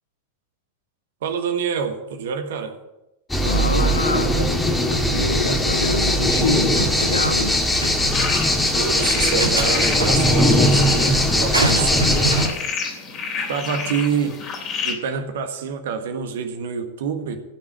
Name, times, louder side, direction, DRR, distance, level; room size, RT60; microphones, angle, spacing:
voice 1, 1.2-2.7 8.7-11.1 11.4-12.4 13.5-14.4 14.8-17.4, right 6 dB, 55° right, 7 dB, 1.7 m, -26 dB
sound 1, 3.3-12.5, equal, 10° left, 2.0 m, -19 dB
voice 2, 3.4-7.6 13.7-13.9, left 3 dB, 75° left, 6 dB, 1.4 m, -26 dB
sound 2, 6.5-7.5 7.8-7.9 9.0-10.1 11.5-12.5, right 2 dB, 80° right, 2.2 m, -25 dB
sound 3, 8.1-14.9, left 5 dB, 35° left, 3.1 m, -30 dB
15.5 x 6.4 x 8.3 m, 0.94 s
figure-of-eight pair, 90°, 0 cm